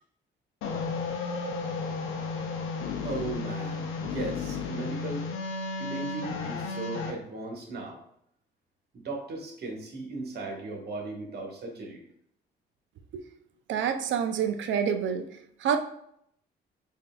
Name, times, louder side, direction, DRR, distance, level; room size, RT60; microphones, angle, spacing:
sound 1, 0.6-7.1, left 4 dB, 90° left, 0.6 m, -33 dB
voice 1, 3.0-5.3 5.8-8.0 8.9-12.0, right 2 dB, 55° right, 0 dB, 1.2 m, -37 dB
voice 2, 13.7-15.3 15.6-15.8, right 8 dB, 70° right, 8 dB, 0.5 m, -27 dB
5.2 x 2.7 x 2.3 m, 0.70 s
cardioid pair, 90°, 20 cm